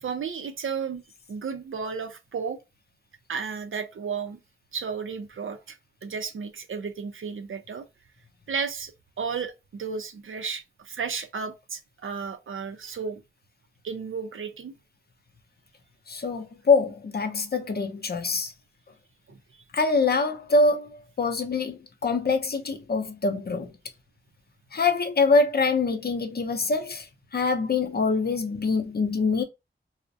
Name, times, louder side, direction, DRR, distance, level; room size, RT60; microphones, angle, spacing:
voice 1, 0.0-1.0 1.3-2.6 3.3-4.4 4.7-5.8 6.0-7.9 8.5-8.9 9.2-13.2 13.8-14.7 19.3-19.4, right 6 dB, 80° right, 0.4 m, -33 dB
voice 2, 16.1-18.5 19.7-23.7 24.7-27.1 27.3-29.4, left 3 dB, 50° left, 0.5 m, -24 dB
2.4 x 2.0 x 2.6 m
wide cardioid pair, 85°, 21 cm